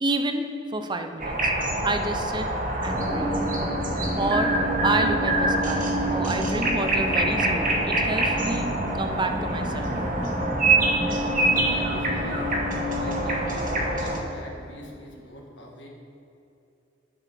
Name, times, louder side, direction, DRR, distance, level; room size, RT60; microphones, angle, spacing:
voice 1, 0.0-1.5 1.8-2.5 2.8-3.4 4.2-4.5 4.8-9.9, right 2 dB, 25° right, 6 dB, 0.6 m, -29 dB
sound 1, 1.2-14.2, right 2 dB, 50° right, 1.2 m, -26 dB
sound 2, 2.9-14.9, equal, 10° left, 1.1 m, -31 dB
voice 2, 11.6-12.6 13.0-15.9, left 1 dB, 70° left, -1 dB, 1.5 m, -42 dB
9.8 x 6.3 x 4.3 m, 2.8 s
head